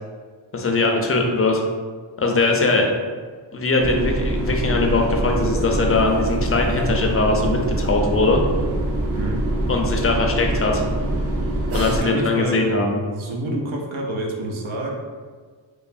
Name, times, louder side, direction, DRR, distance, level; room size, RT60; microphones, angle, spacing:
voice 1, 0.5-1.6 2.2-2.9 3.5-8.4 9.7-10.8 11.7-13.0, left 3 dB, 30° left, 2 dB, 0.4 m, -20 dB
sound 1, 3.8-12.0, right 1 dB, 35° right, 0.4 m, -24 dB
voice 2, 11.8-12.7 13.1-14.9, right 1 dB, 80° right, 0 dB, 0.6 m, -28 dB
3.1 x 2.0 x 2.4 m, 1.5 s
cardioid pair, 60°, 47 cm